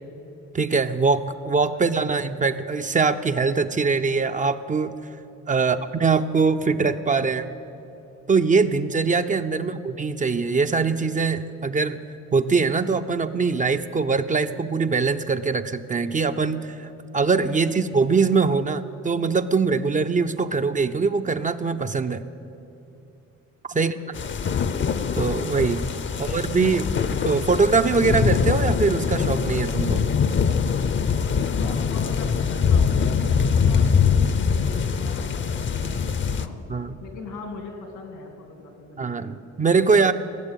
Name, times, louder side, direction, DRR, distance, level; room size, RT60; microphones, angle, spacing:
voice 1, 0.5-4.9 5.5-7.5 8.3-12.0 12.3-22.2 23.7-23.9 25.2-25.9 26.2-30.0 36.7-37.0 39.0-40.1, right 4 dB, 25° right, 9 dB, 0.5 m, -22 dB
voice 2, 1.7-2.3 5.6-5.9 9.5-9.9 17.6-17.7 23.7-24.7 26.1-26.3 31.5-36.6 37.0-39.4 39.9-40.1, left 3 dB, 85° left, 3 dB, 3.0 m, -42 dB
sound 1, 24.1-36.5, left 6 dB, 40° left, 0.7 m, -23 dB
16.5 x 7.3 x 9.0 m, 2.9 s
cardioid pair, 90°, 30 cm